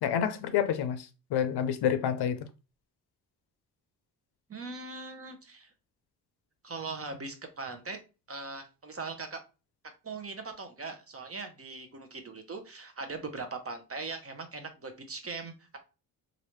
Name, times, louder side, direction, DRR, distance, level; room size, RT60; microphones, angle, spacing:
voice 1, 0.0-2.4, left 9 dB, 60° left, 0.6 m, -28 dB
voice 2, 4.5-5.7 6.6-8.0 8.3-9.4 10.0-15.8, right 3 dB, 30° right, 0.9 m, -40 dB
3.1 x 2.6 x 3.0 m
supercardioid pair, 50°, 44 cm